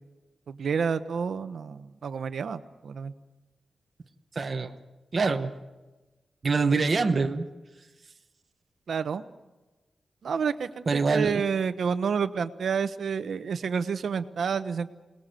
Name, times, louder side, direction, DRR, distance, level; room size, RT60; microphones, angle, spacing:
voice 1, 0.5-3.1 8.9-9.2 10.2-14.9, right 6 dB, 65° right, 11 dB, 1.1 m, -29 dB
voice 2, 4.3-4.8 5.1-5.5 6.4-7.5 10.9-11.4, right 4 dB, 35° right, 5 dB, 1.2 m, -25 dB
27.5 x 19.5 x 7.7 m, 1.2 s
wide cardioid pair, 180°, 0 cm